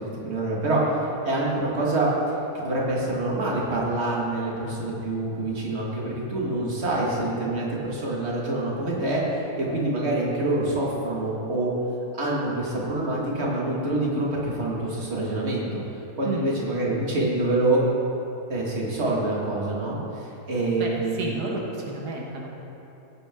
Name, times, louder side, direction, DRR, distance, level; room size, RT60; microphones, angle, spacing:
voice 1, 0.0-2.1 2.5-11.7 12.2-15.8 16.2-17.8 18.5-20.0 20.5-21.3, right 2 dB, 40° right, -4 dB, 2.1 m, -26 dB
voice 2, 16.2-16.5 20.8-22.5, right 2 dB, 80° right, -1 dB, 1.6 m, -32 dB
16.0 x 8.6 x 3.7 m, 3.0 s
omnidirectional pair, 1.7 m